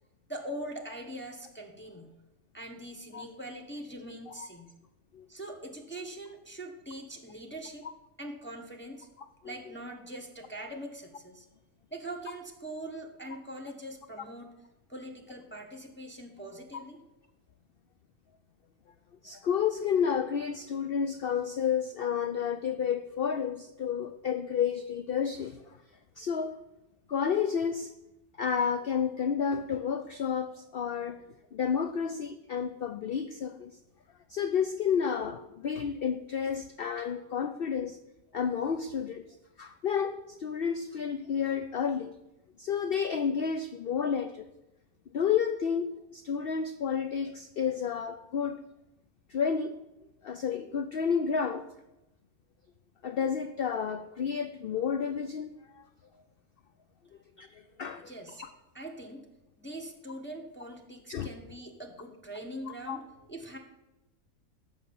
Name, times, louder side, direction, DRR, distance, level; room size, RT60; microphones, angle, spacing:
voice 1, 0.3-2.1 2.5-4.7 5.3-7.9 8.2-9.1 9.4-11.5 11.9-14.5 14.9-17.0 57.7-58.5 58.7-59.3 59.6-63.6, right 1 dB, 10° left, 1 dB, 1.2 m, -42 dB
voice 2, 9.2-9.5 19.2-25.8 26.2-26.6 27.1-27.9 28.4-31.2 31.5-33.8 34.3-38.0 38.3-39.2 39.6-42.1 42.6-44.5 45.1-48.6 49.3-49.8 50.2-51.7 53.0-55.8 57.4-58.1 58.4-58.5 61.1-61.3 62.9-63.0, left 7 dB, 60° left, 9 dB, 0.6 m, -31 dB
14.0 x 6.1 x 7.1 m, 0.97 s
omnidirectional pair, 1.5 m